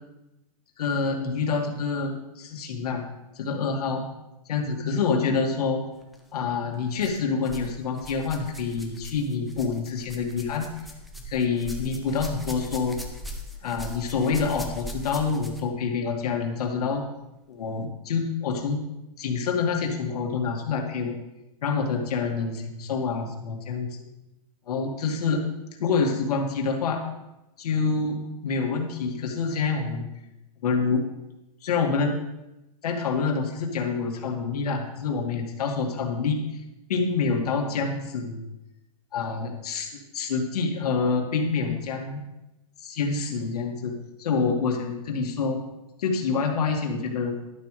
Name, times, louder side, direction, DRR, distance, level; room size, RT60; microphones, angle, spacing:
voice 1, 0.8-3.0 3.4-4.1 4.5-5.8 6.3-10.7 11.3-13.0 13.6-17.0 17.5-18.8 19.2-21.2 21.6-24.1 24.7-25.4 25.8-27.0 27.6-28.2 28.4-30.1 30.6-31.0 31.6-32.2 32.8-36.4 36.9-38.4 39.1-42.3 42.8-45.6 46.0-47.3, left 5 dB, 75° left, 2 dB, 2.2 m, -27 dB
sound 1, 6.0-6.2 7.0-7.7 8.0-15.8 16.7-16.8 17.6-17.7, equal, ahead, 0.9 m, -40 dB
11.5 x 11.5 x 3.3 m, 0.95 s
hypercardioid pair, 155°, 20 cm